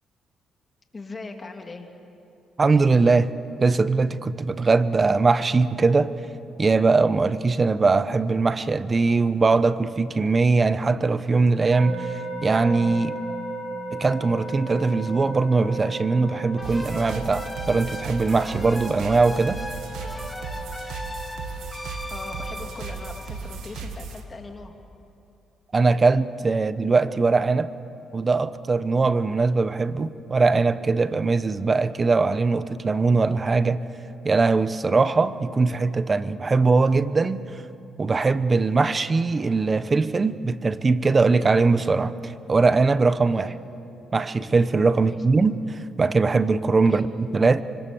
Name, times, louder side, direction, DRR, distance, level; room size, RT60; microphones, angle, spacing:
voice 1, 0.9-1.9 22.1-24.7 43.3-43.6 45.0-45.2 46.9-47.1, left 3 dB, 30° left, 4 dB, 2.7 m, -40 dB
voice 2, 2.6-3.3 3.6-6.1 6.6-13.2 13.9-19.6 25.7-27.7 28.1-33.8 34.2-37.6 38.0-43.5 44.1-47.6, right 4 dB, 30° right, 14 dB, 0.9 m, -21 dB
sound 1, 11.7-23.2, right 2 dB, 55° right, 2.8 m, -36 dB
sound 2, 16.6-24.0, left 1 dB, 10° left, 1.3 m, -38 dB
sound 3, 16.6-24.2, right 4 dB, 85° right, 2.0 m, -36 dB
26.0 x 25.0 x 7.1 m, 2.7 s
cardioid pair, 90°, 0 cm